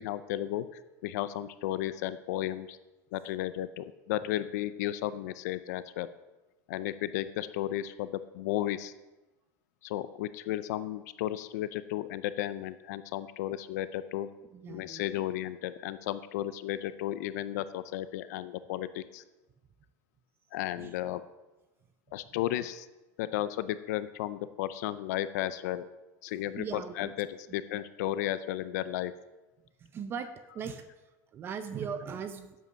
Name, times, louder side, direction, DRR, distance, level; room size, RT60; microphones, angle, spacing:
voice 1, 0.0-2.8 3.1-6.1 6.7-8.9 9.8-14.3 14.7-19.2 20.5-21.2 22.1-22.9 23.2-25.9 26.2-29.1, left 13 dB, 80° left, 14 dB, 0.5 m, -34 dB
voice 2, 14.5-15.0 20.8-20.9 26.5-27.1 29.8-30.3 30.5-30.8 31.3-32.6, right 6 dB, 25° right, 10 dB, 0.5 m, -38 dB
8.2 x 7.6 x 5.6 m, 1.1 s
supercardioid pair, 155°, 9 cm